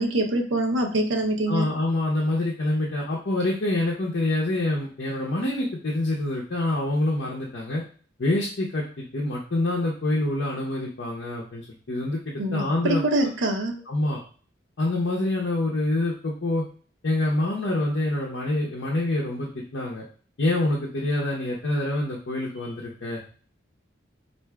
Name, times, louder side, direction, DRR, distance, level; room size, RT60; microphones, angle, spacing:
voice 1, 0.0-1.7 12.4-13.8, right 1 dB, 85° right, 2 dB, 0.7 m, -24 dB
voice 2, 1.5-7.8 8.2-13.0 13.9-14.2 14.8-16.6 17.0-20.0 20.4-23.2, left 1 dB, 65° left, -4 dB, 0.7 m, -26 dB
4.6 x 2.5 x 2.2 m, 0.42 s
head